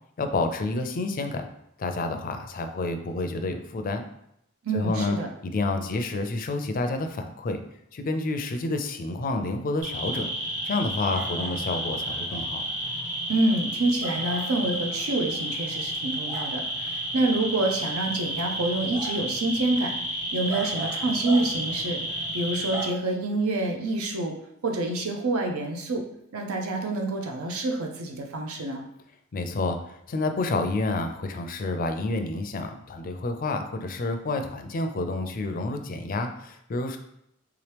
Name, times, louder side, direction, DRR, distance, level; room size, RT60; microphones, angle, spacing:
voice 1, 0.2-1.5 1.8-4.0 4.7-5.2 5.5-7.6 7.9-10.3 10.6-12.6 29.3-37.0, left 2 dB, 40° left, 6 dB, 0.4 m, -29 dB
voice 2, 4.6-5.3 13.3-20.0 20.3-24.3 24.6-26.0 26.3-28.9, right 2 dB, 85° right, 2 dB, 0.6 m, -27 dB
sound 1, 9.8-22.9, right 1 dB, 40° right, 1.4 m, -31 dB
3.5 x 2.9 x 3.3 m, 0.77 s
head